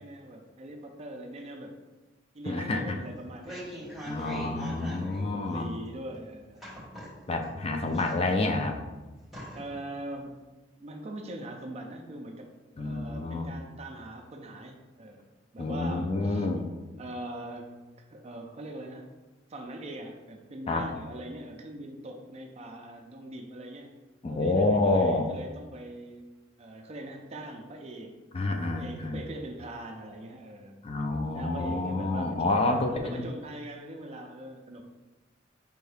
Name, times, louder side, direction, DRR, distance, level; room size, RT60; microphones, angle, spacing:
voice 1, 0.0-1.7 2.3-6.6 7.7-8.0 9.5-10.3 10.8-12.5 12.7-15.2 15.5-16.5 17.0-17.8 18.1-19.0 19.5-23.9 24.3-26.3 26.6-28.2 28.7-30.8 31.3-34.8, right 1 dB, 35° right, 3 dB, 0.4 m, -41 dB
voice 2, 2.5-3.0 4.1-5.7 7.3-8.8 12.8-13.5 15.6-16.7 20.7-20.8 24.2-25.3 28.3-29.2 30.8-33.2, left 2 dB, 30° left, 4 dB, 0.3 m, -28 dB
sound 1, 3.1-5.2 5.5-5.6 6.6-7.5 7.9-8.6 8.9-9.0 9.3-9.8 10.2-10.3, equal, ahead, 1.2 m, -42 dB
4.6 x 2.6 x 3.3 m, 1.2 s
head